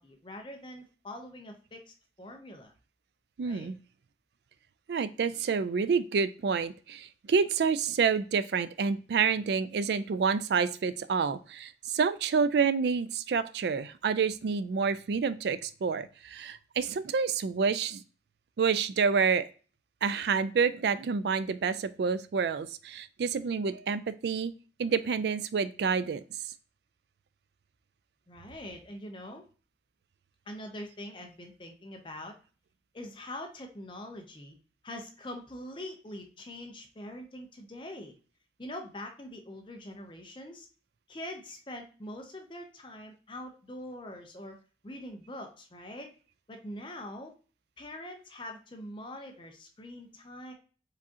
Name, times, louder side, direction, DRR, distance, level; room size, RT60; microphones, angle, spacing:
voice 1, 0.0-2.7 3.4-3.7 28.3-29.4 30.5-32.3 32.9-34.6 34.8-38.1 38.6-40.7 41.1-44.6 44.8-46.1 46.5-47.3 47.8-50.5, left 1 dB, 25° left, 3 dB, 0.7 m, -43 dB
voice 2, 3.4-3.8 4.9-18.0 18.6-19.5 20.0-24.5 24.8-26.2, right 5 dB, 65° right, 14 dB, 0.3 m, -28 dB
4.7 x 3.6 x 2.8 m, 0.37 s
head